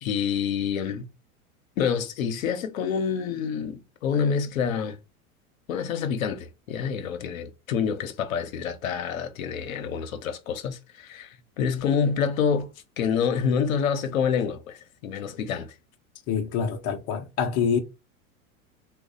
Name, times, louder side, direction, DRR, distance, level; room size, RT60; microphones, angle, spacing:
voice 1, 0.0-1.1 1.8-5.0 5.7-15.7, left 7 dB, 70° left, 0.8 m, -27 dB
voice 2, 16.3-17.8, left 6 dB, 35° left, 0.6 m, -26 dB
3.0 x 2.3 x 3.8 m
hypercardioid pair, 95°, 43 cm